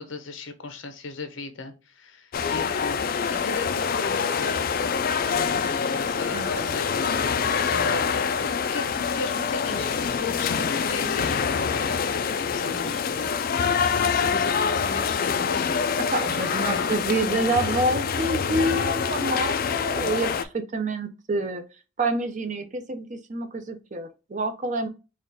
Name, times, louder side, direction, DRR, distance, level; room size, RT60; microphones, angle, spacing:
voice 1, 0.0-3.0 3.3-4.6 5.8-8.1 8.4-11.7 12.5-13.0 13.9-15.9 16.3-17.0, left 3 dB, 80° left, 0.8 m, -36 dB
sound 1, 2.3-20.4, left 6 dB, 50° left, 0.4 m, -25 dB
voice 2, 6.3-6.7 12.7-13.3 16.1-21.6 22.0-24.9, right 2 dB, 40° right, 0.6 m, -28 dB
4.3 x 2.4 x 3.8 m
head